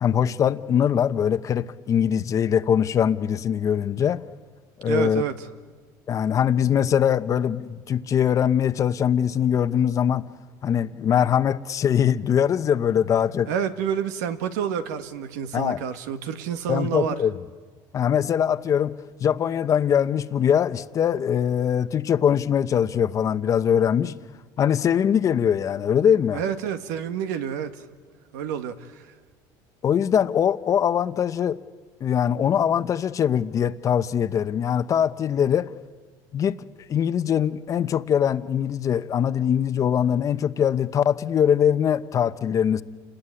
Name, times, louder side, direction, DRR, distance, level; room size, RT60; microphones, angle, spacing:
voice 1, 0.0-4.2 4.8-5.2 6.1-10.3 10.6-13.5 15.5-15.8 16.7-17.3 17.9-18.9 19.2-24.1 24.6-26.4 29.8-31.6 32.0-35.7 36.3-36.6 36.9-42.8, left 8 dB, 35° left, 0.9 m, -22 dB
voice 2, 4.8-5.5 13.5-17.2 26.3-27.8 28.3-29.1, right 8 dB, 90° right, 1.8 m, -28 dB
29.0 x 20.0 x 10.0 m
supercardioid pair, 120°, 9 cm